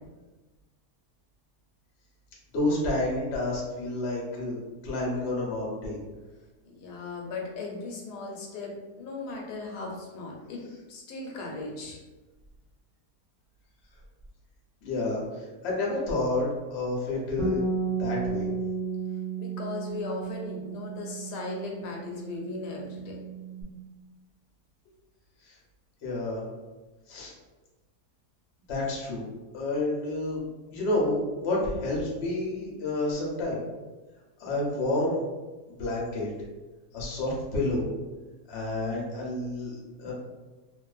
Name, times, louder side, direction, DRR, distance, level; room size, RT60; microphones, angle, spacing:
voice 1, 2.5-6.0 14.8-17.6 18.0-18.5 25.4-25.6 26.0-26.4 27.1-27.3 28.7-29.3 29.5-30.4 30.7-33.6 34.4-35.2 35.8-36.3 36.9-37.9 38.5-40.1, left 2 dB, 55° left, -4 dB, 0.8 m, -29 dB
voice 2, 6.7-8.7 9.0-10.6 10.9-12.0 19.4-23.2, left 3 dB, 80° left, 0 dB, 1.2 m, -37 dB
Bass guitar, 17.4-23.6, right 4 dB, 65° right, 0.9 m, -33 dB
2.5 x 2.3 x 2.3 m, 1.2 s
omnidirectional pair, 1.7 m